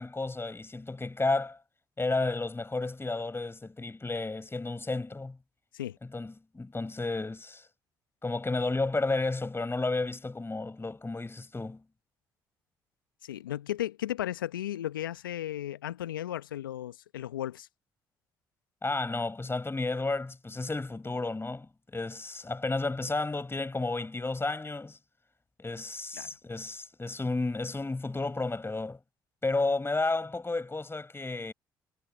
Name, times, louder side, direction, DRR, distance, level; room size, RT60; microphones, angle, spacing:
voice 1, 0.0-1.6 2.0-5.4 6.1-7.6 8.2-11.8 18.8-25.0 25.6-29.0 29.4-31.5, left 3 dB, 20° left, 5.5 m, -32 dB
voice 2, 13.2-17.7 26.1-26.3, left 12 dB, 85° left, 1.4 m, -35 dB
hypercardioid pair, 45°, 11 cm